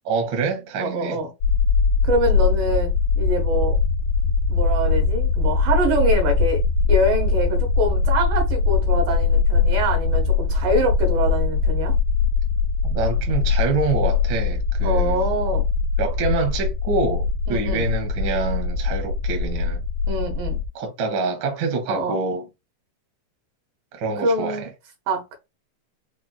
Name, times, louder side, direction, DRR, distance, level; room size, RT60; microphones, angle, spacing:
voice 1, 0.1-1.2 12.9-15.2 16.0-19.8 20.7-22.4 23.9-24.6, right 4 dB, 55° right, 1.3 m, -26 dB
voice 2, 0.8-1.3 2.0-3.8 4.5-6.6 6.9-11.9 14.8-15.7 17.5-17.9 20.1-20.6 21.9-22.2 24.2-24.7 25.1-25.3, right 1 dB, 85° right, 2.9 m, -24 dB
sound 1, 1.4-20.7, left 5 dB, 85° left, 1.1 m, -21 dB
5.8 x 3.2 x 2.2 m
omnidirectional pair, 3.8 m